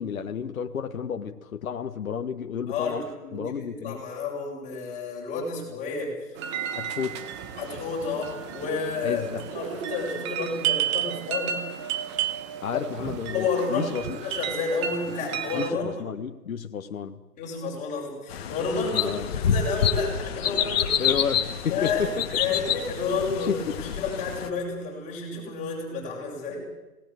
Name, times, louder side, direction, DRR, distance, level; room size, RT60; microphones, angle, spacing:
voice 1, 0.0-3.0 3.3-4.0 6.7-7.3 9.0-9.5 12.6-14.2 15.5-17.2 18.9-19.3 21.0-22.1 23.5-23.7, left 7 dB, 60° left, 6 dB, 1.5 m, -31 dB
voice 2, 2.7-6.1 7.6-9.2 9.5-11.6 12.6-13.1 13.3-15.9 17.4-21.1 21.7-22.0 22.3-26.6, left 4 dB, 15° left, -2 dB, 7.7 m, -31 dB
sound 1, 6.4-15.7, right 10 dB, 20° right, 1.1 m, -32 dB
sound 2, 18.3-24.5, left 8 dB, 40° left, 2.1 m, -28 dB
26.5 x 19.0 x 7.8 m, 1.0 s
hypercardioid pair, 145°, 47 cm